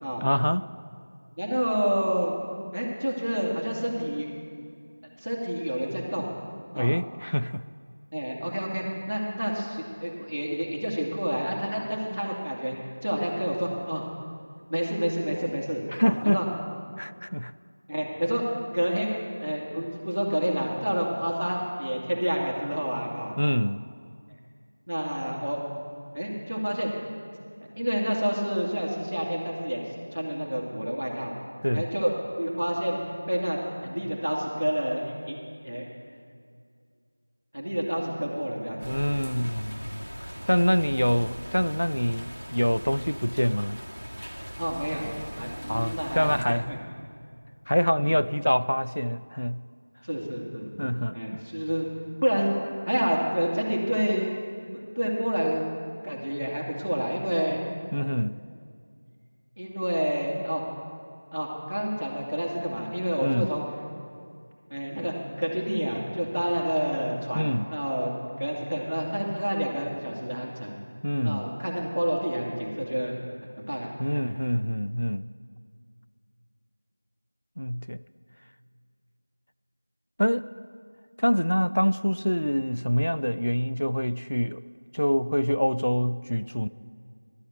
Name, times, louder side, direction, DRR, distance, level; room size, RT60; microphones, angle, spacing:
voice 1, 0.2-0.7 6.8-7.6 15.9-16.4 17.0-17.5 23.4-23.9 31.6-31.9 38.9-40.1 40.5-43.8 45.7-46.8 47.7-49.7 50.8-51.4 57.9-58.4 63.2-63.5 67.3-67.7 71.0-71.5 74.0-75.3 77.6-78.0 80.2-80.5 81.2-84.6 84.9-86.7, equal, 75° left, 15 dB, 0.3 m, -25 dB
voice 2, 1.4-2.3 2.7-4.3 5.2-6.3 6.7-6.9 8.1-12.8 13.0-14.0 14.7-16.4 17.9-18.4 18.7-23.4 24.9-25.6 26.1-26.9 27.8-29.8 30.1-31.3 31.7-32.1 32.4-33.0 33.3-35.4 35.6-35.9 37.5-39.3 44.6-46.8 48.0-48.1 50.0-51.9 52.2-54.3 54.7-55.6 56.0-57.6 59.6-60.6 61.3-63.6 64.7-68.1 68.4-70.7 71.2-73.2 73.6-74.3, equal, 60° right, -1 dB, 2.4 m, -29 dB
sound 1, 38.8-46.4, equal, 80° right, 2.0 m, -40 dB
12.5 x 8.8 x 6.2 m, 2.2 s
figure-of-eight pair, 175°, 0 cm